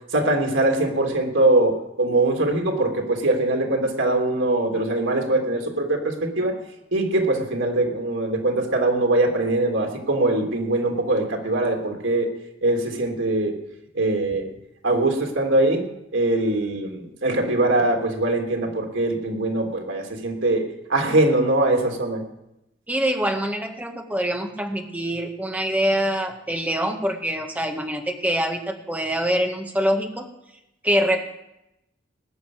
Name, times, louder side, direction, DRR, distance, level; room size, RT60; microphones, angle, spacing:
voice 1, 0.1-6.6 6.9-12.3 12.6-13.5 13.9-14.5 14.8-15.8 16.1-20.6 20.9-22.2, right 2 dB, 75° right, 2 dB, 3.3 m, -22 dB
voice 2, 22.9-30.3 30.8-31.2, equal, 10° right, 3 dB, 1.8 m, -24 dB
19.0 x 6.8 x 9.6 m, 0.86 s
head